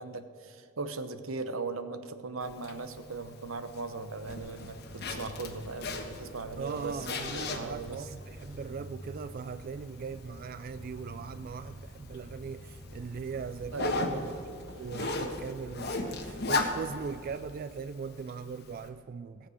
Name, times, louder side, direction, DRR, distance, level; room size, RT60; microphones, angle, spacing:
voice 1, 0.0-8.0 13.7-14.2, right 3 dB, 85° right, 0.9 m, -39 dB
Zipper (clothing), 2.4-18.9, left 2 dB, 55° left, 1.3 m, -38 dB
Insect, 4.4-17.4, left 1 dB, 10° right, 2.0 m, -49 dB
voice 2, 6.6-14.5 14.7-19.5, right 5 dB, 45° right, 0.3 m, -40 dB
17.5 x 7.4 x 6.5 m
head